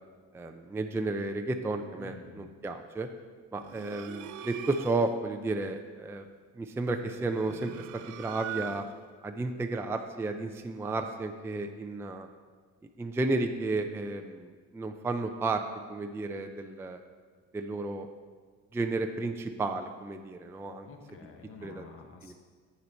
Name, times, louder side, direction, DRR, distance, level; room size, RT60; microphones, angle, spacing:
voice 1, 0.3-3.1 3.5-6.3 6.6-8.9 9.2-12.3 13.0-15.6 15.9-17.0 17.5-18.1 18.7-20.9 21.6-21.8 22.2-22.3, right 2 dB, 10° right, 6 dB, 0.4 m, -33 dB
voice 2, 2.0-2.5 20.8-22.3, left 4 dB, 40° left, 3 dB, 1.3 m, -49 dB
sound 1, 3.6-5.2 7.1-9.1, right 9 dB, 70° right, 0.6 m, -42 dB
7.9 x 6.8 x 4.4 m, 1.5 s
supercardioid pair, 100°, 32 cm